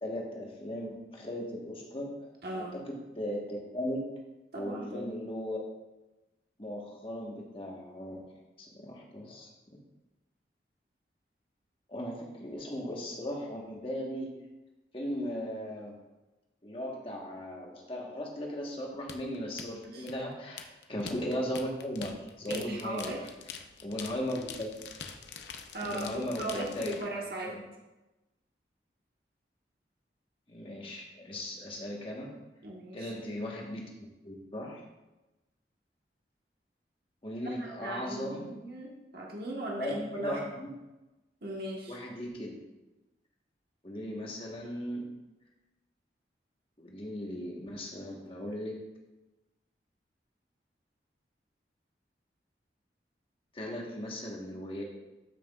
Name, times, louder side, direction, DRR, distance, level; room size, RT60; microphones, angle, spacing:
voice 1, 0.0-2.1 2.5-4.1 4.5-5.6 6.6-8.2 8.6-9.5 11.9-14.3 14.9-16.0 16.6-23.1 23.8-24.7 25.8-27.1 30.5-32.3 32.9-33.9 34.2-34.8 37.2-38.5 39.8-40.7 41.9-42.5 43.8-45.1 46.8-48.8 53.5-54.8, equal, 30° left, -1 dB, 1.3 m, -37 dB
voice 2, 2.4-2.8 4.5-5.2 19.8-20.0 22.5-23.3 25.7-27.6 32.6-33.1 37.4-40.5 41.4-42.0, right 1 dB, 60° right, -2 dB, 1.3 m, -38 dB
sound 1, 19.1-27.1, left 6 dB, 80° left, 0.6 m, -44 dB
13.0 x 5.9 x 2.4 m, 1.0 s
head